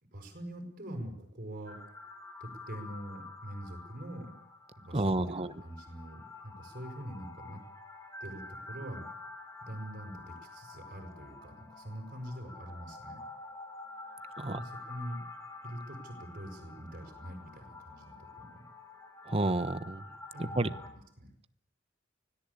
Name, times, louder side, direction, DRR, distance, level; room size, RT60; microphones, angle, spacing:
voice 1, 0.1-1.8 2.4-4.3 4.7-7.6 8.2-9.1 9.6-13.2 14.4-15.2 15.6-18.6 20.3-21.3, equal, 45° right, 3 dB, 6.3 m, -44 dB
sound 1, 1.6-20.9, left 2 dB, 15° left, 5.7 m, -48 dB
voice 2, 4.9-5.5 14.4-14.6 19.3-20.0 20.4-20.7, right 2 dB, 30° right, 13 dB, 1.1 m, -30 dB
24.5 x 17.5 x 8.6 m, 0.73 s
head